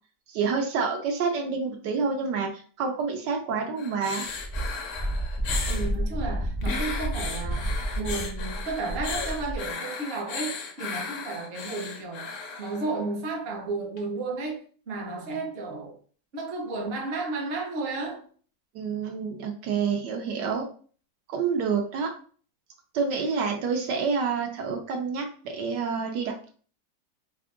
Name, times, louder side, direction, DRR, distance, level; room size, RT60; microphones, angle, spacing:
voice 1, 0.3-4.3 18.7-20.7 21.3-22.1 22.9-26.5, right 5 dB, 75° right, 1.3 m, -28 dB
sound 1, 3.8-5.9 6.6-13.0 14.0-14.1, left 5 dB, 65° left, 0.8 m, -36 dB
Wind, 4.3-9.7, right 1 dB, 20° right, 0.6 m, -30 dB
voice 2, 5.7-7.7 7.9-12.3 12.6-14.6 14.9-15.9 16.3-18.3, right 3 dB, 45° right, 0.9 m, -33 dB
3.5 x 2.5 x 3.6 m
omnidirectional pair, 1.9 m